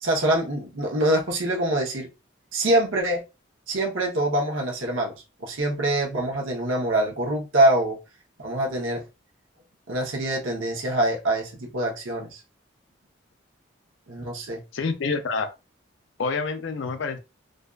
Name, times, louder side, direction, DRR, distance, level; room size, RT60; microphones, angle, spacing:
voice 1, 0.0-2.1 2.5-3.2 3.7-8.0 8.4-9.0 9.9-12.4 14.1-14.6, right 1 dB, 85° right, 0.9 m, -24 dB
voice 2, 14.7-15.5 16.2-17.2, left 4 dB, 75° left, 0.4 m, -27 dB
2.5 x 2.3 x 2.3 m
head